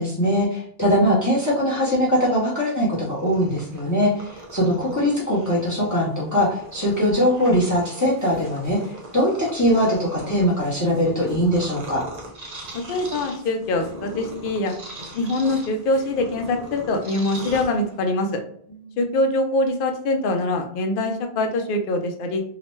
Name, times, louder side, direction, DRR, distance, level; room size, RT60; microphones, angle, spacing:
voice 1, 0.0-12.0 18.9-19.0, equal, 20° left, -6 dB, 0.7 m, -21 dB
Purr, 3.1-18.2, right 1 dB, 45° right, 0.7 m, -40 dB
voice 2, 12.9-14.7 15.1-18.4 19.0-22.4, left 2 dB, 65° left, 4 dB, 0.7 m, -23 dB
2.8 x 2.1 x 3.0 m, 0.64 s
omnidirectional pair, 1.1 m